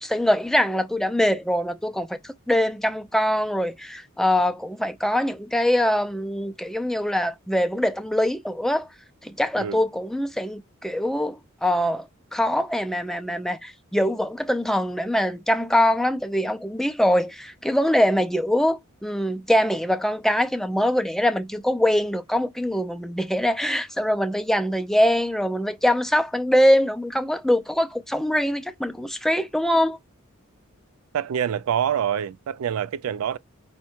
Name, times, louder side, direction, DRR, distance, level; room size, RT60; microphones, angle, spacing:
voice 1, 0.0-8.9 9.2-30.0, equal, ahead, 0.4 m, -23 dB
voice 2, 31.1-33.4, right 9 dB, 80° right, 0.3 m, -26 dB
5.3 x 2.2 x 4.4 m
head